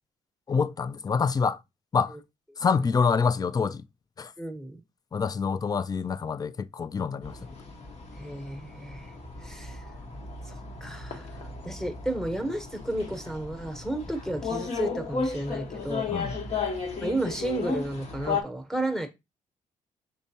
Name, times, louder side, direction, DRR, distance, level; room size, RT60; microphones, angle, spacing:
voice 1, 0.5-1.6 1.9-2.2 2.6-3.8 4.2-4.3 5.1-7.4 16.1-16.4, left 5 dB, 25° left, 0.4 m, -26 dB
voice 2, 4.4-4.8 8.2-9.1 9.4-9.8 10.4-16.1 17.0-19.1, right 1 dB, 5° left, 1.1 m, -32 dB
sound 1, 7.2-18.4, left 5 dB, 50° left, 1.2 m, -35 dB
5.3 x 3.3 x 2.8 m
cardioid pair, 80°, 14 cm